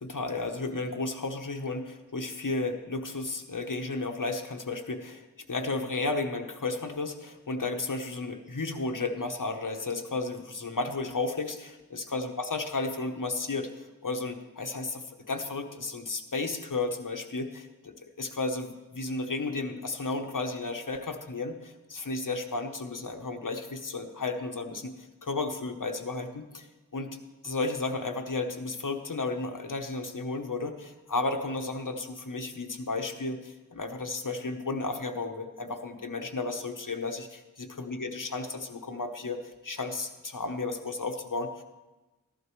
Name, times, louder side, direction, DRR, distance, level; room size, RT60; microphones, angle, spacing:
voice 1, 0.0-26.7 26.9-27.2 27.4-41.6, left 3 dB, 70° left, 4 dB, 1.0 m, -33 dB
14.5 x 11.5 x 3.1 m, 1.1 s
wide cardioid pair, 40°, 33 cm